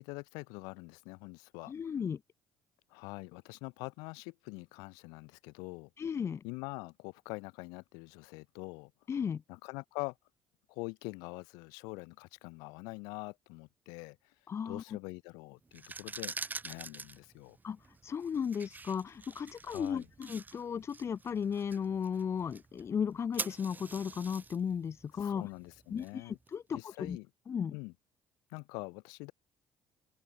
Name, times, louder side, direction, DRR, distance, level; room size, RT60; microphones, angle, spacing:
voice 1, 0.0-1.7 2.9-5.9 6.4-8.9 9.5-10.1 10.7-14.2 14.6-17.6 19.7-20.1 25.2-26.4 26.7-27.3 27.7-27.9 28.5-29.3, left 29 dB, 75° left, 6.2 m, -44 dB
voice 2, 1.7-2.2 6.0-6.4 9.1-9.4 14.5-14.8 17.6-25.5 25.9-27.2 27.5-27.7, left 7 dB, 40° left, 1.0 m, -35 dB
sound 1, 15.7-26.5, right 4 dB, 25° right, 4.0 m, -46 dB
open air
hypercardioid pair, 60°, 7 cm